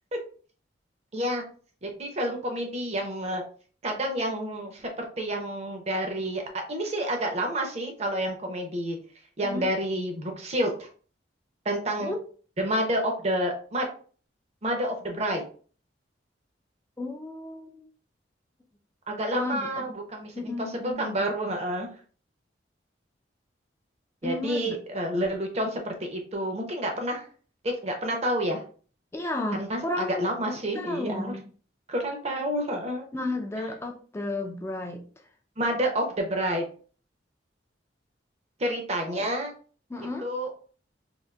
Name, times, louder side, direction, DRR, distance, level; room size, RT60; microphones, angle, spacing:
voice 1, 1.1-1.4 1.8-3.4 3.8-6.4 6.7-9.0 9.4-10.9 11.6-12.1 12.6-13.9 14.6-15.4 19.1-21.9 24.2-27.2 27.6-28.6 29.5-31.4 31.9-33.1 35.6-36.6 38.6-39.5 40.2-40.5, right 1 dB, 35° right, 3 dB, 0.7 m, -29 dB
voice 2, 17.0-17.8 19.4-19.9 20.4-21.1 24.2-24.8 29.1-30.3 30.7-31.4 33.1-35.0 39.0-39.3 39.9-40.3, left 2 dB, 15° left, 3 dB, 0.4 m, -33 dB
3.8 x 2.4 x 2.3 m, 0.42 s
head